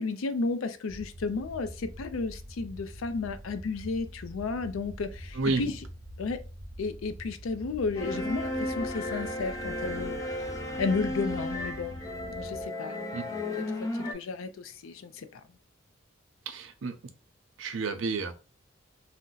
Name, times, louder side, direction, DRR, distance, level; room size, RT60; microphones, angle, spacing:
voice 1, 0.0-5.8 6.2-6.4 6.8-10.5 10.8-13.1 14.0-15.4, left 4 dB, 85° left, 0.4 m, -33 dB
sound 1, 0.9-12.7, equal, 35° right, 0.7 m, -45 dB
sound 2, 7.9-14.1, left 1 dB, 15° left, 0.4 m, -34 dB
voice 2, 16.5-17.0 17.6-18.3, right 3 dB, 75° right, 0.5 m, -30 dB
2.7 x 2.1 x 3.8 m
head